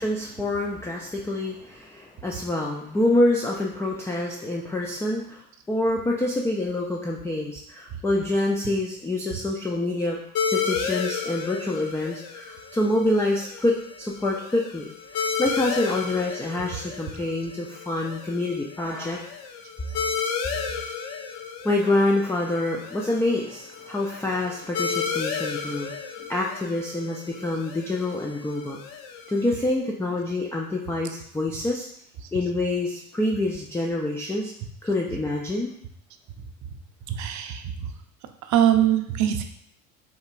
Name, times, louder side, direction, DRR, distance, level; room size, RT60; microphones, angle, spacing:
voice 1, 0.0-5.4 5.7-10.2 10.5-14.9 15.4-19.2 21.6-25.9 26.3-28.8 29.3-31.9 32.3-34.5 34.8-35.7, left 2 dB, 5° left, -1 dB, 0.4 m, -26 dB
sound 1, 10.3-29.5, left 6 dB, 55° left, 0.7 m, -33 dB
voice 2, 37.1-37.9 38.4-39.4, right 10 dB, 45° right, 7 dB, 0.6 m, -22 dB
5.1 x 3.3 x 2.5 m, 0.72 s
hypercardioid pair, 75°, 41 cm